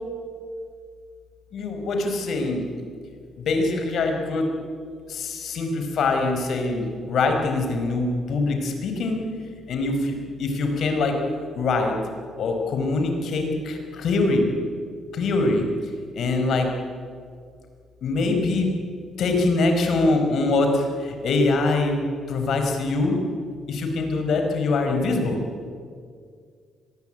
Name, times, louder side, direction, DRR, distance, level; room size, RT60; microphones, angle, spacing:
voice 1, 1.5-2.7 3.4-4.5 5.1-9.2 9.7-11.2 11.5-11.9 12.4-14.5 15.1-15.7 16.1-16.7 18.0-18.7 19.2-22.0 22.3-23.2 23.7-25.4, left 3 dB, 60° left, 4 dB, 5.0 m, -23 dB
25.0 x 20.0 x 9.2 m, 2.1 s
cardioid pair, 130°, 0 cm